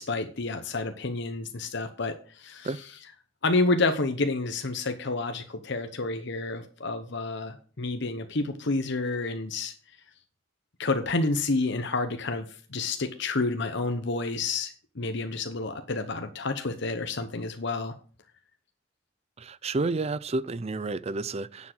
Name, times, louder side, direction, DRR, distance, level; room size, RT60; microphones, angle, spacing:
voice 1, 0.0-2.7 3.4-9.7 10.8-17.9, left 3 dB, 60° left, 1.0 m, -29 dB
voice 2, 19.4-21.7, right 3 dB, 35° right, 0.5 m, -30 dB
10.0 x 7.4 x 6.1 m
head